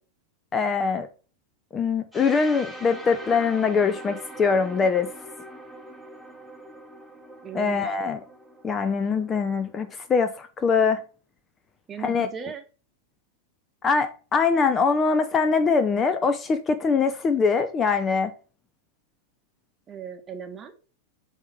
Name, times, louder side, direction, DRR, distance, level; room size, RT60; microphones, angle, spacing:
voice 1, 0.5-1.1 1.7-5.1 7.5-8.2 8.6-11.0 12.0-12.3 13.8-18.3, left 5 dB, 20° left, 0.4 m, -23 dB
sound 1, 2.1-9.9, right 1 dB, 5° left, 1.2 m, -43 dB
voice 2, 7.4-8.0 11.9-12.6 19.9-20.7, right 7 dB, 25° right, 0.9 m, -37 dB
8.0 x 2.8 x 4.8 m
figure-of-eight pair, 90°, 0 cm